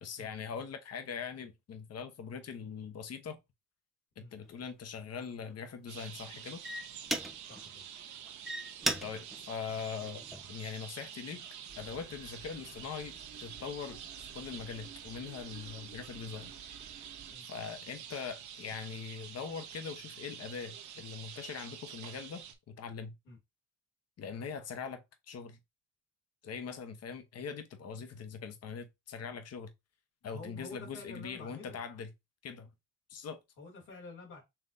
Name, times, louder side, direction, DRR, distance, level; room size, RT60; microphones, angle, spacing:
voice 1, 0.0-3.4 4.2-6.6 9.0-10.2 10.5-14.0 14.3-16.5 17.5-23.2 24.2-25.6 26.4-29.7 30.2-32.1 32.4-32.7 33.1-33.4, left 6 dB, 55° left, 1.0 m, -42 dB
sound 1, 4.4-4.6 5.2-5.5 6.2-6.3 6.6-7.7 8.2-10.6 11.2-11.5, right 1 dB, ahead, 0.9 m, -37 dB
sound 2, 5.9-22.5, right 9 dB, 70° right, 0.9 m, -48 dB
voice 2, 7.5-7.8 17.3-17.5 23.3-23.4 30.2-31.8 33.6-34.4, left 3 dB, 90° left, 2.6 m, -49 dB
sound 3, 11.7-17.4, right 6 dB, 50° right, 1.4 m, -54 dB
5.9 x 3.2 x 2.6 m
cardioid pair, 90°, 30 cm